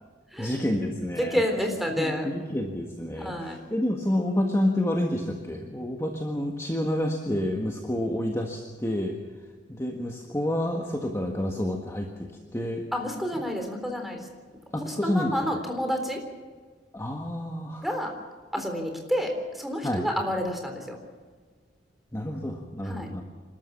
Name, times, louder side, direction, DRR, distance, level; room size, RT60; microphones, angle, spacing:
voice 1, 0.4-1.4 2.0-9.1 9.7-12.8 14.7-15.3 16.9-17.9 19.8-20.1 22.1-23.2, left 1 dB, 15° left, 2 dB, 1.6 m, -29 dB
voice 2, 1.2-2.3 3.1-3.6 12.9-14.3 14.8-16.2 17.8-18.1 18.5-21.0 22.8-23.1, equal, ahead, 3 dB, 3.7 m, -29 dB
28.0 x 13.0 x 7.2 m, 1.5 s
head